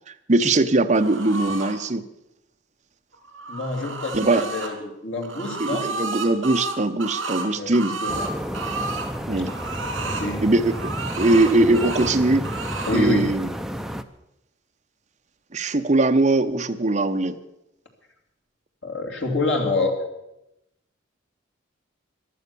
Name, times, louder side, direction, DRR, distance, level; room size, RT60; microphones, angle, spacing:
voice 1, 0.3-2.0 4.1-4.4 5.6-8.0 9.3-9.5 10.4-12.4 12.9-13.5 15.5-17.4, right 2 dB, 35° right, 7 dB, 0.8 m, -21 dB
sound 1, 0.9-1.7 3.1-4.7 5.2-9.1 9.5-10.3 10.7-12.1 12.4-13.0, right 3 dB, 70° right, 3.1 m, -32 dB
voice 2, 3.5-5.9 7.5-8.3 10.0-10.5 12.9-13.3 18.8-20.0, left 2 dB, 70° left, 2 dB, 2.9 m, -27 dB
sound 2, 8.1-14.0, equal, ahead, 0.5 m, -31 dB
15.0 x 11.5 x 6.9 m, 0.87 s
head